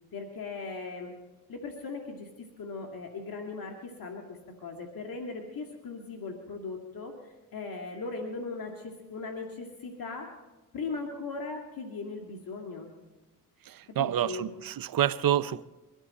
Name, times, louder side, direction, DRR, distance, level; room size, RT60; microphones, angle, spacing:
voice 1, 0.1-1.1 1.5-7.1 7.5-10.3 10.7-12.9 14.0-14.5, left 4 dB, 60° left, 2.1 m, -38 dB
voice 2, 13.7-15.6, right 11 dB, 60° right, 0.8 m, -28 dB
23.5 x 13.0 x 4.2 m
supercardioid pair, 55°, 39 cm